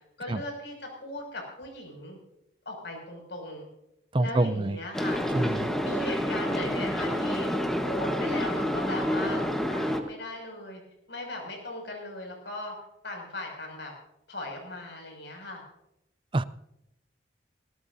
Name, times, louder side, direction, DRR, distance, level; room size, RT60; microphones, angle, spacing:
voice 1, 0.2-2.2 2.6-3.7 4.2-5.2 5.8-7.5 7.8-9.4 9.7-10.8 11.1-12.7 13.0-13.9 14.3-15.6, left 2 dB, 70° left, 2 dB, 6.3 m, -38 dB
voice 2, 4.1-4.8 5.3-5.7 16.3-16.4, right 2 dB, 25° right, 15 dB, 0.4 m, -26 dB
sound 1, 4.9-10.0, equal, ahead, 1.2 m, -28 dB
20.0 x 18.0 x 2.7 m, 0.84 s
head